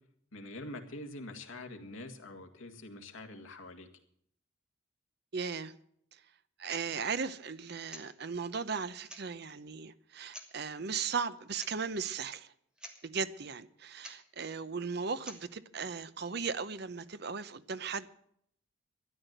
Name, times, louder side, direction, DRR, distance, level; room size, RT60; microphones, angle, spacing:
voice 1, 0.3-3.9, left 2 dB, 80° left, 2.0 m, -45 dB
voice 2, 5.3-5.7 6.1-6.2 6.6-12.5 13.0-18.1, right 5 dB, 50° right, 0.7 m, -37 dB
sound 1, 6.7-6.9 7.9-8.1 8.7-8.8 9.0-9.6 10.3-10.5 11.5-11.8 12.0-12.1 12.5-12.6 12.8-13.0 14.0-14.2 15.2-15.4, equal, 5° right, 1.6 m, -48 dB
13.0 x 11.0 x 7.9 m
head